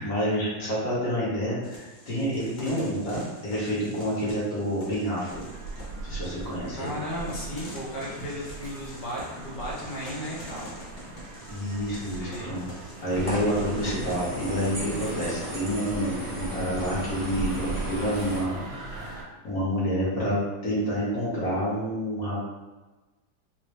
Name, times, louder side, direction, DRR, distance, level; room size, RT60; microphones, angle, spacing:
voice 1, 0.0-5.4 6.0-7.0 11.5-12.6 13.0-22.5, equal, 55° left, -8 dB, 1.5 m, -28 dB
sound 1, 1.6-14.7, equal, 85° left, 0.4 m, -46 dB
sound 2, 5.3-19.2, right 3 dB, 65° right, 1.1 m, -40 dB
voice 2, 6.8-10.7 12.0-12.5, equal, 70° left, -6 dB, 1.6 m, -35 dB
sound 3, 13.1-18.4, equal, 15° right, 0.7 m, -34 dB
4.5 x 2.0 x 3.1 m, 1.2 s
omnidirectional pair, 2.0 m